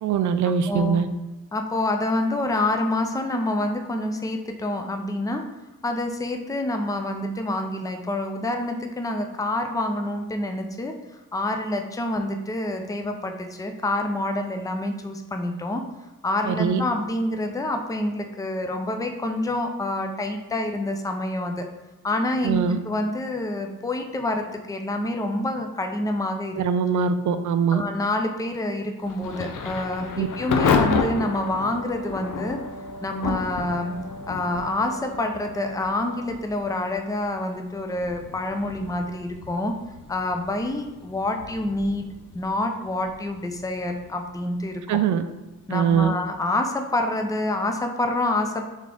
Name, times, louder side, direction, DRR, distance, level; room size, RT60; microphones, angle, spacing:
voice 1, 0.0-1.1 16.4-16.8 22.4-22.8 26.6-27.8 30.2-30.3 44.9-45.2 45.7-46.1, right 7 dB, 60° right, 10 dB, 0.4 m, -22 dB
voice 2, 0.7-1.0 1.5-5.4 5.8-10.9 11.3-15.8 16.2-21.7 22.0-26.6 27.7-32.6 33.0-34.0 34.3-39.7 40.1-42.1 42.3-44.8 45.7-48.7, left 1 dB, 10° left, 5 dB, 0.5 m, -27 dB
Thunder / Rain, 29.0-45.8, left 5 dB, 60° left, 0.6 m, -32 dB
Wind instrument woodwind instrument, 29.8-36.5, right 1 dB, 10° right, 1.1 m, -40 dB
3.6 x 3.2 x 3.7 m, 1.1 s
supercardioid pair, 55°, 35 cm